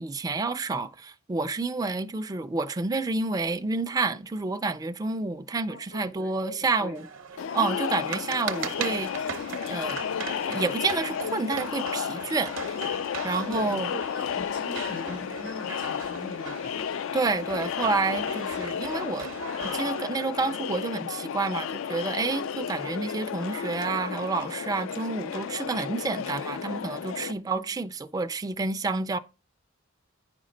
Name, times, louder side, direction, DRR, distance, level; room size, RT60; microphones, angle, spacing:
voice 1, 0.0-7.1 7.5-9.1 9.7-10.0 10.5-12.5 13.2-13.9 17.1-19.3 19.6-29.2, right 3 dB, 20° right, 0.4 m, -29 dB
voice 2, 5.7-7.0 13.3-16.9 27.4-27.6, left 2 dB, 85° left, 3.9 m, -40 dB
sound 1, 6.9-20.0, right 6 dB, 65° right, 0.8 m, -39 dB
Crowd, 7.4-27.3, left 8 dB, 65° left, 0.3 m, -33 dB
9.5 x 5.2 x 3.8 m
head